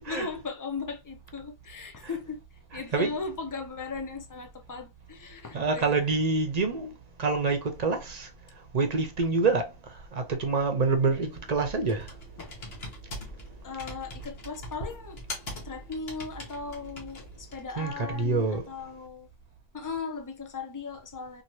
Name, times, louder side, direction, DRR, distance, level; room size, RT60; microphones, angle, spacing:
voice 1, 0.0-2.4 2.7-6.0 12.4-12.5 13.6-15.2 15.6-19.3 19.7-21.4, left 4 dB, 30° left, 0.4 m, -37 dB
voice 2, 2.7-3.2 5.5-6.9 7.2-8.3 8.7-9.7 10.1-12.1 17.8-18.6, right 4 dB, 45° right, 0.7 m, -26 dB
Computer keyboard, 10.8-17.8, equal, 80° left, 1.3 m, -42 dB
3.0 x 2.7 x 2.6 m
omnidirectional pair, 1.0 m